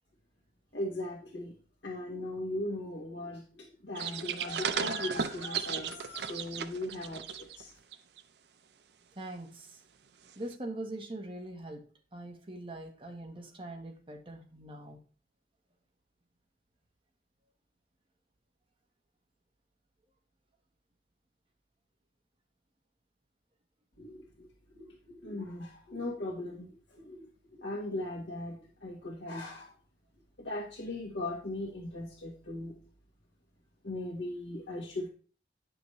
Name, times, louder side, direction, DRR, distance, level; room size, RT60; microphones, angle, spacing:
voice 1, 0.7-1.6 1.8-7.7 24.0-24.5 24.7-27.3 27.5-29.7 30.4-32.7 33.8-35.1, left 1 dB, 85° left, 1.4 m, -38 dB
sound 1, 4.0-7.6 7.9-8.2 10.5-10.6, right 7 dB, 65° right, 0.5 m, -35 dB
voice 2, 9.2-9.8 10.4-11.8 12.1-15.0, right 1 dB, 30° right, 1.3 m, -42 dB
9.7 x 6.1 x 3.2 m
head